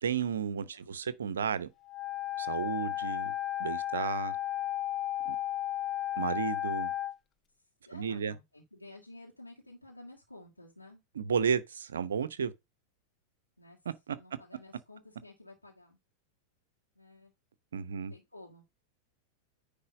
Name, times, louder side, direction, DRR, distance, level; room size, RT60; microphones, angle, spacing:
voice 1, 0.0-1.7 2.4-3.3 3.6-4.4 5.3-5.4 6.2-6.9 7.9-8.3 11.2-12.5 14.1-14.2 17.7-18.1, right 7 dB, 65° right, 0.8 m, -32 dB
Wind instrument woodwind instrument, 1.8-7.1, left 12 dB, 25° left, 0.5 m, -34 dB
voice 2, 7.9-11.0 13.6-13.8 14.1-16.0 17.0-17.3 17.8-18.6, left 2 dB, 85° left, 1.9 m, -52 dB
9.7 x 3.5 x 5.1 m
figure-of-eight pair, 90°, 0 cm